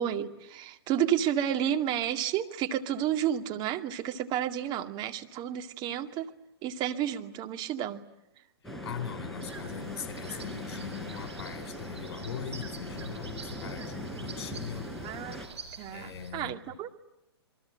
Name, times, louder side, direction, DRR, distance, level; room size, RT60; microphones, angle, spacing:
voice 1, 0.0-6.3 6.6-8.0 15.0-15.4 15.8-17.0, right 10 dB, 35° right, 6 dB, 2.2 m, -31 dB
voice 2, 8.6-15.2 15.9-16.8, left 8 dB, 65° left, 7 dB, 4.1 m, -41 dB
sound 1, 8.6-15.5, equal, ahead, 4.2 m, -40 dB
sound 2, 9.4-16.3, right 4 dB, 85° right, 6.8 m, -47 dB
28.0 x 23.0 x 9.0 m, 0.86 s
hypercardioid pair, 125°, 14 cm